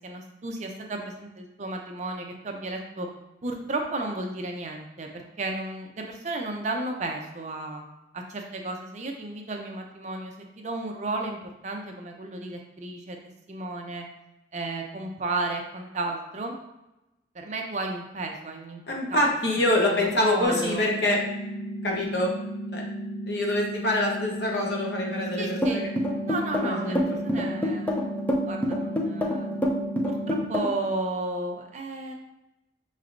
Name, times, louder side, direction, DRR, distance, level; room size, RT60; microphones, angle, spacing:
voice 1, 0.0-3.1 3.4-7.8 8.1-13.2 13.5-14.0 14.5-16.6 17.3-18.8 19.1-19.3 19.8-20.8 25.4-25.9 26.2-27.0 27.2-28.2 28.4-29.6 30.0-32.1, right 2 dB, 40° right, 2 dB, 0.5 m, -33 dB
voice 2, 18.9-21.2 21.8-22.3 22.7-22.8 23.3-25.8 26.6-27.0 27.3-27.5, left 1 dB, 70° left, -1 dB, 0.9 m, -25 dB
sound 1, 20.4-30.4, right 1 dB, 25° right, 1.0 m, -35 dB
sound 2, 25.6-30.9, equal, 10° left, 0.5 m, -26 dB
5.7 x 3.2 x 2.5 m, 0.93 s
head